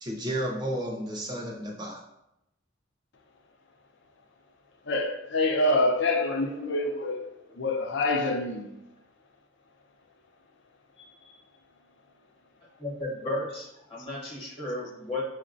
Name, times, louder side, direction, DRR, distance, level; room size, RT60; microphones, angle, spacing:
voice 1, 0.0-2.0 6.6-6.9, right 1 dB, 20° right, 0.4 m, -33 dB
voice 2, 4.9-7.3 7.6-8.7, left 2 dB, 60° left, 0.5 m, -26 dB
voice 3, 12.8-15.2, left 2 dB, 30° left, 0.9 m, -34 dB
5.9 x 2.1 x 2.5 m
head